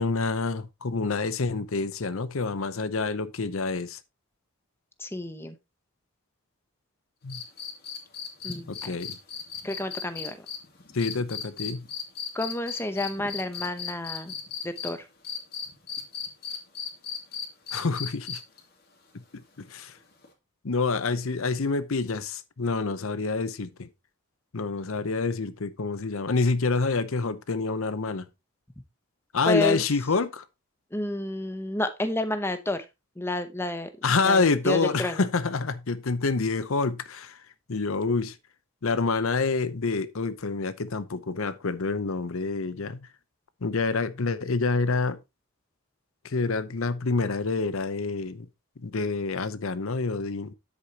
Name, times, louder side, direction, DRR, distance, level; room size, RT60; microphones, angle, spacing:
voice 1, 0.0-4.0 7.2-7.4 8.7-9.2 10.9-11.8 17.7-18.4 19.6-19.9 20.6-23.9 24.5-28.3 29.3-30.4 34.0-37.4 37.7-38.3 38.8-43.1 43.6-45.2 46.2-48.5 48.8-50.5, left 4 dB, 70° left, 0.7 m, -27 dB
voice 2, 5.0-5.6 8.4-8.9 9.6-10.5 12.3-14.3 14.6-15.1 29.5-29.8 30.9-32.8 33.2-33.9 34.2-35.3, left 1 dB, 10° left, 0.8 m, -30 dB
sound 1, 7.3-14.9 15.2-18.6 20.2-20.3, left 7 dB, 45° left, 2.5 m, -36 dB
9.8 x 8.2 x 2.9 m
head